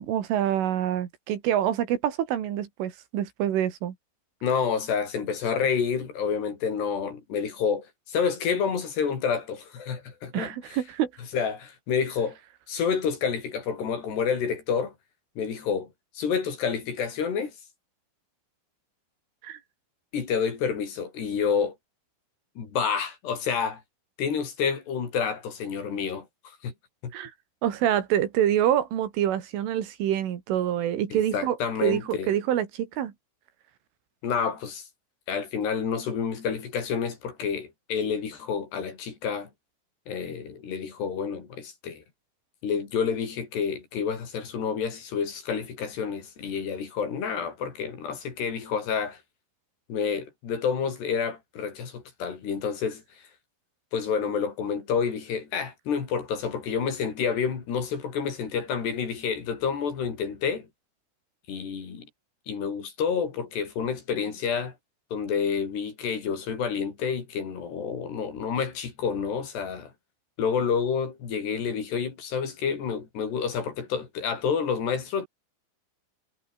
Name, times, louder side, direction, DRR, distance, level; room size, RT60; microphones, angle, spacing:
voice 1, 0.0-4.0 10.3-11.1 19.4-19.6 27.1-27.3 27.6-31.6 31.8-33.1, right 11 dB, 75° right, 4.9 m, -26 dB
voice 2, 4.4-10.8 11.3-12.4 12.7-14.9 15.4-15.9 16.2-17.5 20.1-21.8 22.6-23.8 24.2-26.7 27.0-27.1 31.1-32.3 34.2-34.9 35.3-39.5 40.1-42.0 42.6-49.2 49.9-53.2 53.9-60.7 61.5-62.1 62.5-64.7 65.1-69.9 70.4-75.3, left 6 dB, 55° left, 6.2 m, -29 dB
omnidirectional pair, 5.9 m